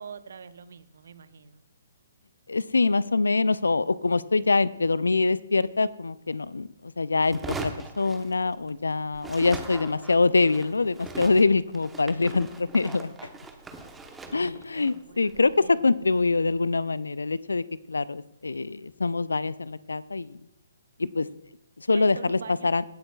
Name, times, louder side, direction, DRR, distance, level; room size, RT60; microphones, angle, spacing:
voice 1, 0.0-1.6 14.4-15.9 21.0-21.4 21.9-22.7, right 6 dB, 65° right, 14 dB, 0.6 m, -45 dB
voice 2, 2.5-13.1 14.3-20.4 21.1-21.3 21.8-22.8, left 3 dB, 80° left, 18 dB, 0.4 m, -24 dB
sound 1, 7.2-8.8 9.1-16.3, right 3 dB, 10° right, 0.9 m, -41 dB
16.5 x 8.1 x 2.3 m, 0.82 s
figure-of-eight pair, 130°, 0 cm